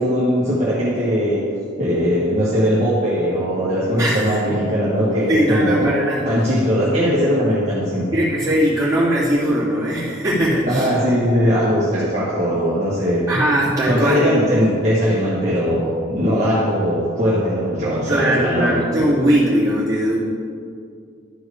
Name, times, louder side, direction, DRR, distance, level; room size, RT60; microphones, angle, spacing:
voice 1, 0.0-1.4 1.8-6.0 6.2-8.1 10.7-13.3 13.6-18.8, equal, 30° right, -10 dB, 1.4 m, -19 dB
voice 2, 4.0-4.5 5.3-6.3 8.1-10.9 13.3-14.2 18.1-20.2, equal, 15° right, -10 dB, 2.4 m, -19 dB
11.5 x 4.6 x 5.0 m, 2.3 s
head